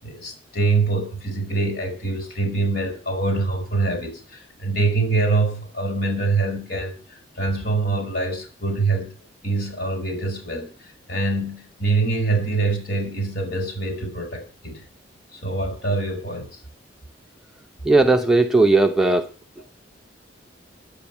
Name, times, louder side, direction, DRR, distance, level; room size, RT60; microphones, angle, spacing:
voice 1, 0.0-6.9 7.4-9.1 9.4-10.7 11.1-14.8 15.3-16.5, right 3 dB, 55° left, 3 dB, 6.4 m, -24 dB
voice 2, 17.8-19.2, right 2 dB, ahead, 3 dB, 0.8 m, -16 dB
9.9 x 9.0 x 8.7 m, 0.36 s
head